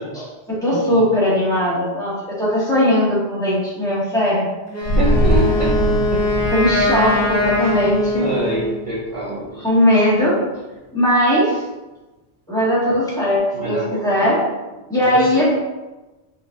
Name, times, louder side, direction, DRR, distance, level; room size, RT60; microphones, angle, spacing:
voice 1, 0.1-4.5 6.5-8.3 9.6-10.4 10.9-11.6 12.5-14.4 14.7-15.5, equal, 5° left, -9 dB, 1.4 m, -18 dB
Wind instrument woodwind instrument, 4.7-8.8, left 2 dB, 20° left, 0.4 m, -22 dB
sound 1, 4.8-9.4 9.7-9.8, equal, 65° left, 1.3 m, -22 dB
voice 2, 4.8-5.8 6.1-6.5 7.6-7.8 8.2-10.0 13.5-14.1 15.0-15.5, right 1 dB, 35° right, -5 dB, 0.6 m, -26 dB
4.0 x 3.9 x 2.4 m, 1.1 s
omnidirectional pair, 1.1 m